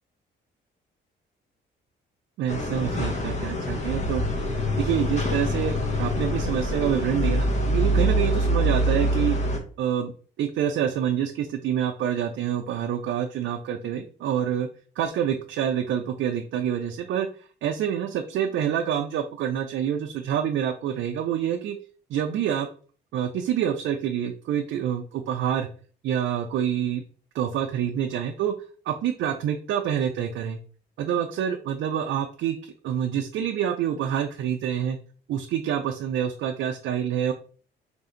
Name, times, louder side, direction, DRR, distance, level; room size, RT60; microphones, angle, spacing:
voice 1, 2.4-4.2 4.8-9.4 9.8-10.1 10.4-14.7 15.0-17.3 17.6-21.8 22.1-22.7 23.1-25.7 26.0-27.0 27.3-28.5 28.9-30.6 31.0-35.0 35.3-37.3, right 9 dB, 70° right, 3 dB, 0.4 m, -27 dB
sound 1, 2.5-9.6, equal, 35° left, 0.9 m, -25 dB
3.4 x 2.5 x 3.8 m, 0.41 s
cardioid pair, 90°, 20 cm